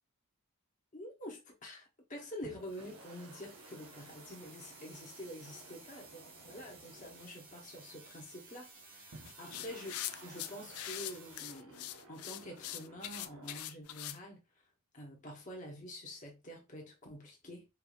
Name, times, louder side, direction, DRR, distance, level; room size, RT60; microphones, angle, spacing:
voice 1, 0.9-9.9 10.2-14.4 14.9-17.7, equal, 35° left, 1.2 m, -47 dB
sound 1, 2.4-8.3 9.1-13.6, right 2 dB, 75° right, 0.8 m, -57 dB
sound 2, 2.6-11.4, right 4 dB, 40° right, 1.3 m, -56 dB
sound 3, 9.2-14.2, left 13 dB, 75° left, 0.4 m, -43 dB
4.6 x 2.8 x 2.5 m
head